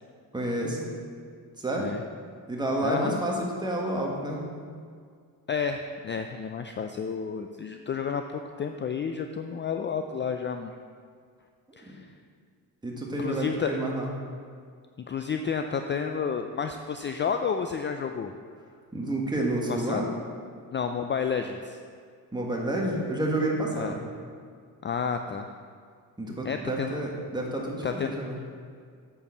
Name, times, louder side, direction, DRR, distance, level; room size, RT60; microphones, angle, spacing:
voice 1, 0.3-0.9 1.6-1.9 2.5-4.4 11.7-11.8 12.8-14.1 18.9-20.1 22.3-24.0 26.2-28.4, right 1 dB, 10° right, -2 dB, 1.6 m, -29 dB
voice 2, 2.8-3.2 5.5-10.7 11.8-12.1 13.2-13.8 15.0-18.3 19.7-20.0 20.7-21.8 23.7-24.0 24.8-25.5 26.4-27.0 27.8-28.1, left 6 dB, 30° left, 6 dB, 0.4 m, -31 dB
8.5 x 4.7 x 7.1 m, 2.1 s
cardioid pair, 105°, 38 cm